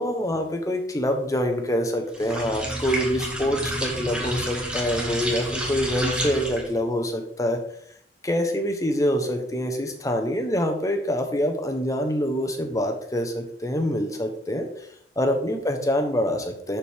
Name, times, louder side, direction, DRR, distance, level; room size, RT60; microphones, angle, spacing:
voice 1, 0.0-7.6 8.2-14.7 15.2-16.8, equal, 20° left, 4 dB, 0.9 m, -25 dB
sound 1, 2.1-6.8, right 1 dB, 5° right, 1.3 m, -29 dB
11.0 x 4.4 x 3.5 m, 0.69 s
head